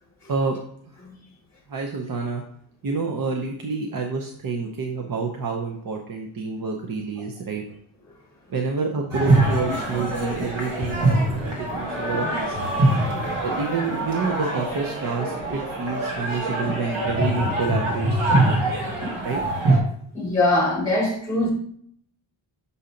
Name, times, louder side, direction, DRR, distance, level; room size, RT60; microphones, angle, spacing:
voice 1, 1.7-2.4 2.8-7.6 8.5-12.7 13.4-18.7 19.2-19.4, right 4 dB, 45° right, 1 dB, 0.7 m, -28 dB
sound 1, 9.1-19.8, right 2 dB, 70° right, 2.3 m, -23 dB
voice 2, 20.1-21.5, left 2 dB, 5° left, 0 dB, 0.9 m, -22 dB
7.0 x 2.8 x 5.0 m, 0.63 s
wide cardioid pair, 165°, 49 cm